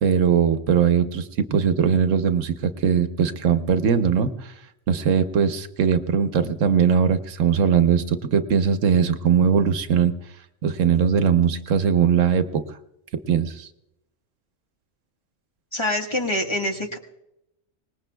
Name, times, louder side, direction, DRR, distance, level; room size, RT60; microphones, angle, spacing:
voice 1, 0.0-2.5 2.8-4.5 4.9-10.1 10.6-12.6 13.3-13.7, right 7 dB, 90° right, 9 dB, 1.2 m, -20 dB
voice 2, 15.7-17.0, left 1 dB, 25° left, 2 dB, 1.4 m, -25 dB
24.5 x 19.5 x 2.3 m, 0.85 s
omnidirectional pair, 1.3 m